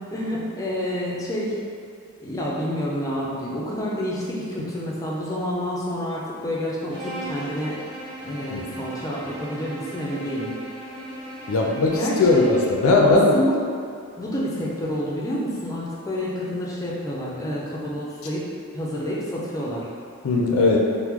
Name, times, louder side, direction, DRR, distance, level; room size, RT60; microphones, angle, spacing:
voice 1, 0.0-1.6 2.2-7.8 8.2-10.5 11.9-12.5 13.0-13.6 14.2-19.9, equal, 15° left, -5 dB, 0.4 m, -28 dB
Bowed string instrument, 6.9-12.9, right 1 dB, 40° right, 1.3 m, -37 dB
voice 2, 11.5-13.4 20.2-20.8, left 3 dB, 75° left, -1 dB, 0.4 m, -18 dB
2.9 x 2.1 x 3.5 m, 2.2 s
head